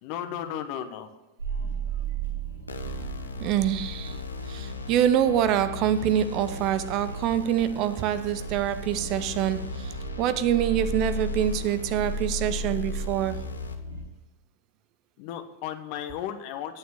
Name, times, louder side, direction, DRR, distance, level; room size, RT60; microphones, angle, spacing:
voice 1, 0.0-1.1 15.2-16.8, left 10 dB, 45° left, 1.2 m, -34 dB
sound 1, 1.4-14.0, right 3 dB, 80° right, 3.7 m, -35 dB
sound 2, 2.7-13.7, left 5 dB, 80° left, 1.1 m, -39 dB
voice 2, 3.4-4.2 4.5-13.5, right 10 dB, 40° right, 0.6 m, -25 dB
9.3 x 8.9 x 6.3 m
figure-of-eight pair, 90°, 0 cm